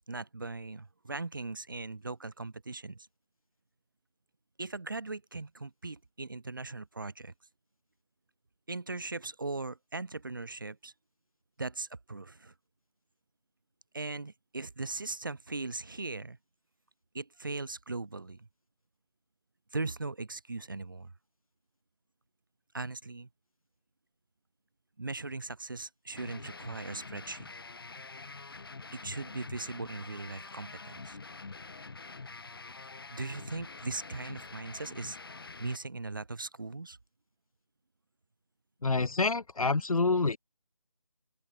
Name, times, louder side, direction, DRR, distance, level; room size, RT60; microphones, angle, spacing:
voice 1, 0.1-3.0 4.6-7.3 8.7-10.9 11.6-12.5 13.9-16.4 17.1-18.5 19.7-21.1 22.7-23.3 25.0-27.5 28.9-31.2 33.1-35.2 35.6-37.0, right 3 dB, 40° right, 0.6 m, -39 dB
sound 1, 26.2-35.8, left 4 dB, 40° left, 1.3 m, -46 dB
voice 2, 38.8-40.4, left 3 dB, 90° left, 0.9 m, -27 dB
open air
figure-of-eight pair, 170°, 18 cm